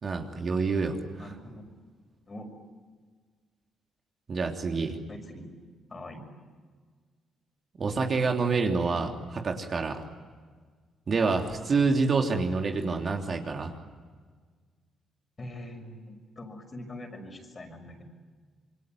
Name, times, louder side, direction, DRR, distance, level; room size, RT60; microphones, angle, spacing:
voice 1, 0.0-1.3 4.3-5.0 7.8-10.0 11.1-13.7, right 4 dB, 45° right, 3 dB, 3.2 m, -27 dB
voice 2, 1.2-1.7 2.3-2.5 5.1-5.5 5.9-6.2 15.4-18.0, left 1 dB, 30° left, 5 dB, 6.0 m, -43 dB
27.5 x 23.5 x 9.3 m, 1.5 s
cardioid pair, 90°, 0 cm